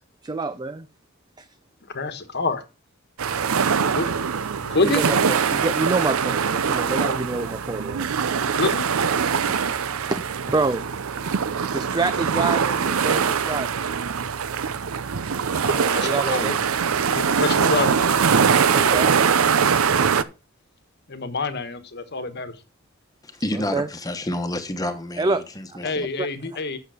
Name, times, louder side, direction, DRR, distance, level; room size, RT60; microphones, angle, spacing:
voice 1, 0.2-0.9 1.4-1.5 4.8-8.1 9.5-9.6 10.1-10.2 10.5-10.9 11.7-13.7 15.6-16.6 18.7-19.2 23.5-23.9 25.2-25.4 26.2-26.3, right 3 dB, 20° right, 0.4 m, -27 dB
voice 2, 1.9-2.6 3.8-4.1 4.6-5.0 8.4-8.8 15.6-16.6 17.1-18.3 21.1-22.5 25.8-26.8, left 3 dB, 50° left, 1.3 m, -27 dB
sound 1, 3.2-20.2, right 6 dB, 80° right, 0.6 m, -22 dB
voice 3, 23.2-26.1, left 1 dB, 15° left, 1.2 m, -29 dB
9.1 x 6.7 x 4.9 m
head